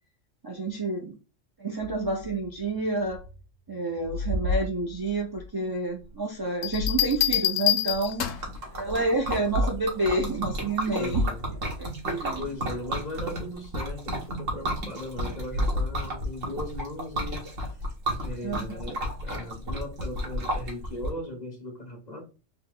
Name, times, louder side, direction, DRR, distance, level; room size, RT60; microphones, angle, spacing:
voice 1, 0.4-1.2 1.6-3.2 3.7-8.3 8.7-11.2 11.8-12.5 18.4-18.8, right 2 dB, 30° right, 0.4 m, -29 dB
sound 1, 1.8-3.4 3.7-5.5 6.4-7.5 7.9-8.0 9.3-9.7 10.1-10.3 10.7-10.8 11.0-12.3 15.3-16.5, left 1 dB, 70° right, 0.9 m, -32 dB
sound 2, 6.6-8.6 10.2-10.5, left 12 dB, 85° left, 1.0 m, -26 dB
Liquid, 7.9-21.1, equal, 85° right, 1.6 m, -33 dB
voice 2, 11.0-11.5 12.4-17.5 18.2-22.3, left 1 dB, 35° left, 1.3 m, -38 dB
4.0 x 2.1 x 3.9 m
omnidirectional pair, 1.3 m